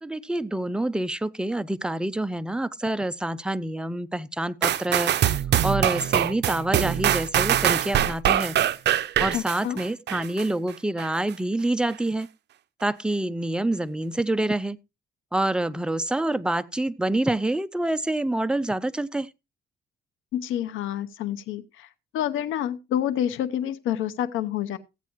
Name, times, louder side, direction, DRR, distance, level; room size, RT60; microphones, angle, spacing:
voice 1, 0.0-5.1 5.6-8.6 9.2-12.3 12.8-14.8 15.3-19.3, right 1 dB, 5° right, 0.5 m, -27 dB
sound 1, 4.6-10.5 11.0-11.1, right 11 dB, 60° right, 0.6 m, -23 dB
voice 2, 9.3-9.8 20.3-21.9 22.1-24.8, left 10 dB, 85° left, 0.9 m, -28 dB
15.0 x 8.3 x 3.0 m
cardioid pair, 90°, 20 cm